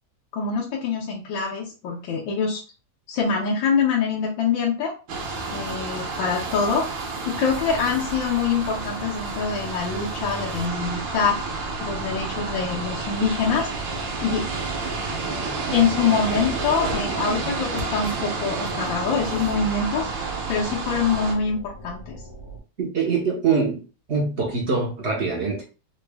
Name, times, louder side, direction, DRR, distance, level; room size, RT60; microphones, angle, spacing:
voice 1, 0.3-2.6 3.1-4.9 5.5-6.9 7.2-11.4 11.8-13.7 14.2-14.5 15.7-22.2, left 5 dB, 80° left, -4 dB, 1.5 m, -24 dB
sound 1, 5.1-21.3, right 3 dB, 75° right, 1.5 m, -30 dB
sound 2, 7.5-22.6, right 4 dB, 50° left, 0.9 m, -40 dB
voice 2, 22.8-23.8 24.1-25.6, right 5 dB, 55° right, -1 dB, 0.7 m, -23 dB
3.9 x 2.1 x 3.3 m, 0.33 s
omnidirectional pair, 2.1 m